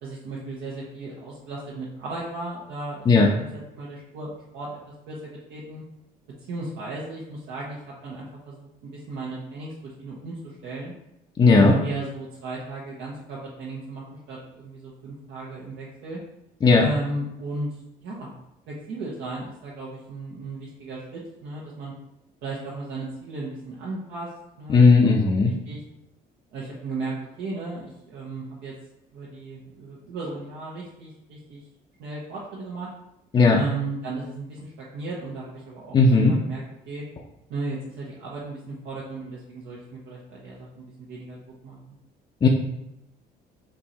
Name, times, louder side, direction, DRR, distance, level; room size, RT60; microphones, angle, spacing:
voice 1, 0.0-3.5 3.7-4.8 5.1-5.8 6.5-10.9 11.5-16.2 16.8-17.7 18.0-18.3 18.7-21.9 22.4-24.3 24.6-25.1 25.7-25.8 26.5-28.7 29.1-31.6 32.0-32.9 33.5-37.0 37.5-41.4 41.6-42.0, right 2 dB, 80° right, -5 dB, 1.0 m, -35 dB
voice 2, 11.4-11.7 16.6-16.8 24.7-25.5 33.3-33.6 35.9-36.4 42.4-42.5, left 3 dB, 25° left, -1 dB, 0.5 m, -16 dB
4.5 x 2.6 x 4.2 m, 0.84 s
cardioid pair, 110°, 17 cm